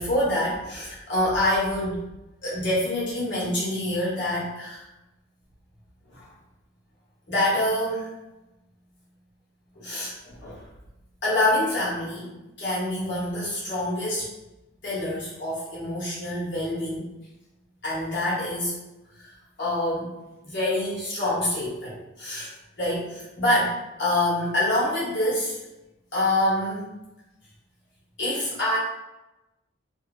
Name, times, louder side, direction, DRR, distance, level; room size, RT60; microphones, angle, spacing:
voice 1, 0.0-2.0 2.4-4.9 6.1-6.3 7.3-8.1 9.7-10.6 11.2-12.3 12.6-14.3 14.8-17.1 17.8-18.8 19.1-19.3 19.6-20.1 20.4-22.5 22.8-25.6 26.1-26.8 28.2-28.8, left 1 dB, 60° left, -8 dB, 1.1 m, -26 dB
2.7 x 2.0 x 2.4 m, 1.0 s
head